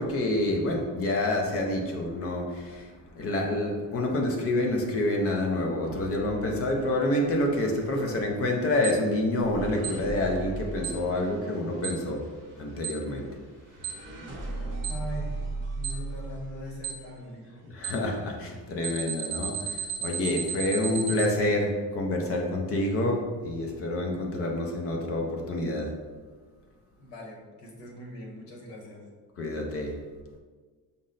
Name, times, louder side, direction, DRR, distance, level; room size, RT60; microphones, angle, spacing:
voice 1, 0.0-12.3 12.6-13.3 17.6-26.0 29.4-30.0, left 1 dB, 35° left, 1 dB, 0.5 m, -28 dB
sound 1, 5.8-17.1, right 2 dB, 30° right, 0.6 m, -39 dB
Alarm, 8.8-8.9 9.8-9.9 10.8-10.9 11.8-11.9 12.8-12.9 13.8-13.9 14.8-14.9 15.8-15.9 16.8-16.9 17.8-17.9 18.8-21.3, right 9 dB, 70° right, 0.6 m, -32 dB
voice 2, 14.9-15.4 15.7-17.6 27.0-29.0, equal, 75° left, -1 dB, 1.2 m, -41 dB
5.3 x 2.1 x 3.7 m, 1.4 s
cardioid pair, 180°, 41 cm